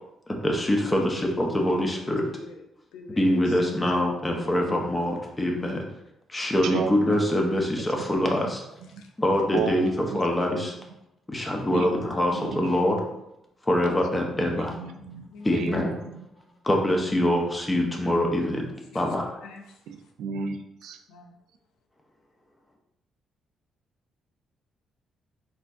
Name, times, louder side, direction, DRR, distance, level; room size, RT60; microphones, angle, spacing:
voice 1, 0.3-2.3 3.2-5.8 6.3-8.6 9.2-10.7 11.3-13.0 13.7-14.8 15.4-15.9 16.6-18.7 18.9-19.4, left 1 dB, 15° left, 1 dB, 0.8 m, -24 dB
voice 2, 0.8-1.1 1.6-2.6 2.9-3.6 3.9-4.0 9.0-9.1 11.3-11.5 15.3-15.6 18.6-19.0 19.4-19.8 21.1-21.4, left 3 dB, 85° left, 4 dB, 0.5 m, -46 dB
voice 3, 6.6-7.0 8.4-8.5 8.9-9.0 9.5-9.8 10.1-10.2 10.5-10.7 11.7-11.9 12.3-13.1 14.1-14.5 14.8-15.3 15.5-16.3 19.9-21.0, right 6 dB, 80° right, 5 dB, 0.4 m, -33 dB
4.2 x 2.8 x 2.5 m, 0.83 s
cardioid pair, 90°, 0 cm